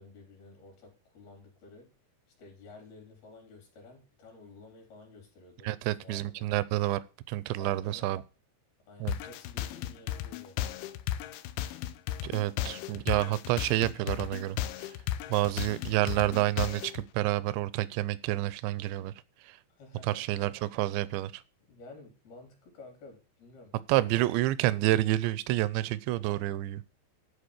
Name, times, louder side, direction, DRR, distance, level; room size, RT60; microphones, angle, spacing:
voice 1, 0.0-1.9 2.4-6.5 7.6-8.1 8.9-10.6 12.6-12.8 19.7-20.5 21.7-23.7, left 3 dB, 55° left, 2 dB, 4.8 m, -52 dB
voice 2, 5.6-7.0 7.3-8.2 9.0-9.2 12.2-15.0 15.3-19.1 19.4-19.6 20.0-21.4 23.9-26.8, right 16 dB, 80° right, 18 dB, 2.8 m, -29 dB
sound 1, 9.1-17.0, left 12 dB, 90° left, 3.2 m, -35 dB
13.0 x 4.8 x 8.5 m, 0.34 s
omnidirectional pair, 5.4 m